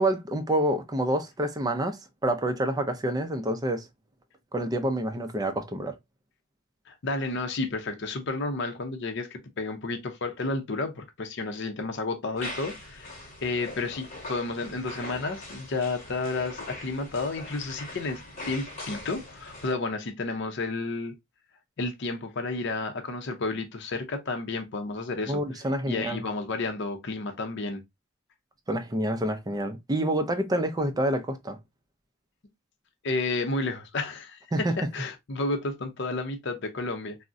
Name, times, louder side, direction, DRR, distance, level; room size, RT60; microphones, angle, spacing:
voice 1, 0.0-3.9 4.5-5.9 25.3-26.2 28.7-31.6 34.5-34.7, right 1 dB, 20° right, 0.4 m, -27 dB
voice 2, 6.9-21.1 21.8-25.4 25.9-27.8 33.0-37.2, left 3 dB, 60° left, 0.6 m, -31 dB
sound 1, 12.4-19.7, left 1 dB, 40° left, 1.1 m, -41 dB
3.6 x 2.1 x 2.5 m
head